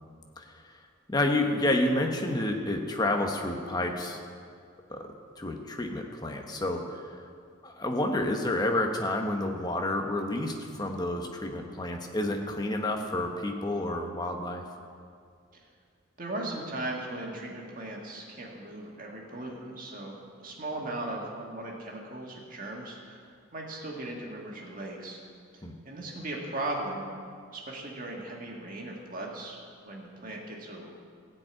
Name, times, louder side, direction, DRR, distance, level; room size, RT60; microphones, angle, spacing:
voice 1, 1.1-4.2 4.9-5.1 5.4-7.0 7.6-14.6 25.6-25.8, left 1 dB, 20° left, 3 dB, 1.0 m, -29 dB
voice 2, 16.2-23.2 23.5-25.2 25.5-27.1 27.5-31.0, right 2 dB, 40° right, -1 dB, 1.9 m, -38 dB
15.0 x 5.3 x 8.9 m, 2.2 s
head